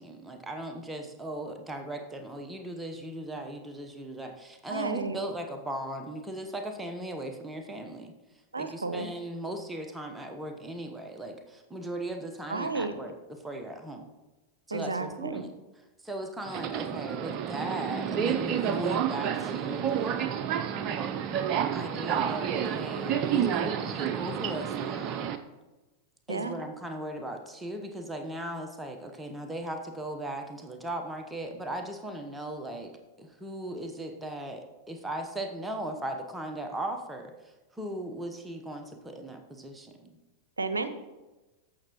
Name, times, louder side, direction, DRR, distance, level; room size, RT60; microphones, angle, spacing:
voice 1, 0.0-8.1 8.6-14.1 14.7-15.6 16.0-20.2 21.7-25.4 26.3-32.9 33.2-37.3 37.7-40.2, right 1 dB, 10° right, 5 dB, 0.9 m, -38 dB
voice 2, 4.7-5.2 8.5-9.1 12.5-12.9 14.7-15.4 26.3-26.6 40.6-40.9, right 3 dB, 75° right, 11 dB, 0.6 m, -32 dB
Subway metro underground, 16.5-25.4, right 8 dB, 35° right, 0.5 m, -30 dB
14.5 x 6.1 x 3.0 m, 1.1 s
figure-of-eight pair, 90°, 0 cm